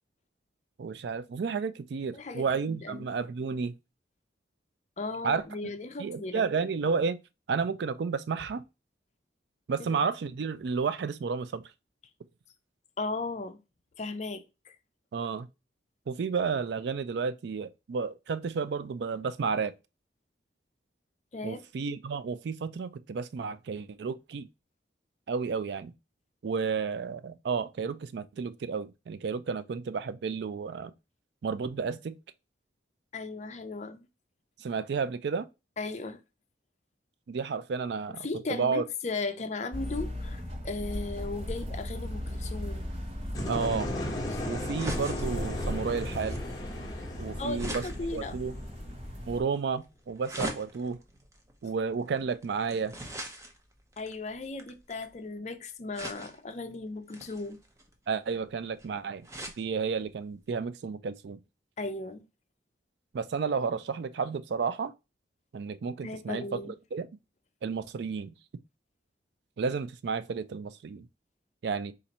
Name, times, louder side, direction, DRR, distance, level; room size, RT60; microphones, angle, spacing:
voice 1, 0.8-3.7 5.2-5.7 6.0-7.2 7.5-8.6 9.7-11.6 15.1-15.5 16.1-19.7 21.4-24.5 25.3-25.9 26.4-30.9 31.4-32.1 34.6-35.5 37.3-38.8 43.5-43.9 44.5-46.4 47.2-47.8 48.1-48.5 49.3-51.0 51.6-52.9 58.1-59.3 59.6-61.4 63.1-64.9 65.5-67.1 67.6-68.3 69.6-71.1 71.6-71.9, right 5 dB, 65° right, 0.4 m, -32 dB
voice 2, 2.1-3.1 5.0-6.5 9.8-10.0 13.0-13.6 14.0-14.8 21.3-21.6 33.1-34.1 35.8-36.2 38.1-42.9 44.3-44.4 47.4-48.4 52.2-52.3 54.0-57.6 61.8-62.2 66.0-66.7, left 3 dB, 40° left, 0.5 m, -36 dB
sound 1, 39.7-49.4, equal, 30° right, 1.0 m, -37 dB
sound 2, 42.6-55.2 55.9-56.6 57.1-59.6 60.1-60.2 60.4-60.5, right 1 dB, 15° right, 0.6 m, -43 dB
sound 3, 43.3-49.2, left 1 dB, 20° left, 0.9 m, -36 dB
4.3 x 2.5 x 4.1 m
head